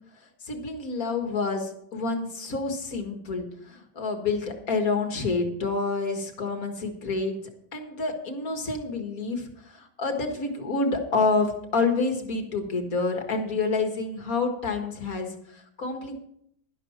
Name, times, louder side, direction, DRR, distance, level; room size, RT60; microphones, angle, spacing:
voice 1, 0.4-7.4 7.7-16.2, left 3 dB, 45° left, 5 dB, 1.9 m, -28 dB
12.0 x 11.5 x 4.3 m, 0.70 s
omnidirectional pair, 2.2 m